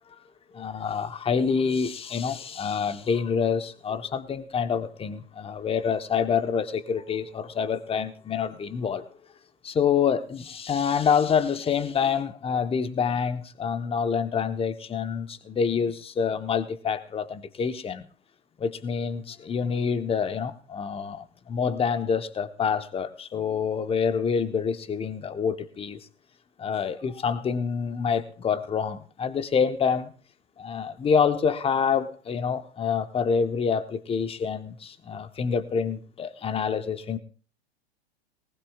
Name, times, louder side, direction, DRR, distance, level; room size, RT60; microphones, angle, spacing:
voice 1, 0.5-9.1 9.6-18.0 18.6-26.1 26.6-30.1 30.6-37.2, left 6 dB, 15° left, 1.1 m, -27 dB
19.0 x 19.0 x 2.4 m
hypercardioid pair, 100°, 33 cm